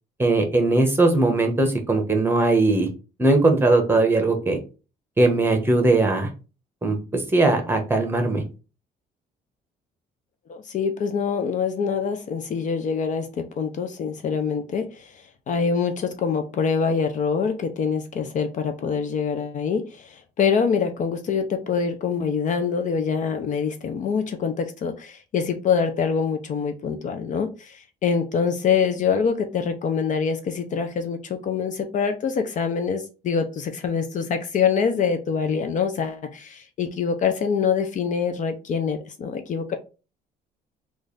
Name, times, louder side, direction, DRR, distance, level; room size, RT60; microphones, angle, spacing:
voice 1, 0.2-2.9 3.2-4.6 5.2-6.3 6.8-8.4, right 2 dB, 15° right, 1.0 m, -19 dB
voice 2, 10.5-39.8, left 6 dB, 50° left, 0.5 m, -25 dB
3.2 x 2.5 x 3.8 m
cardioid pair, 110°, 17 cm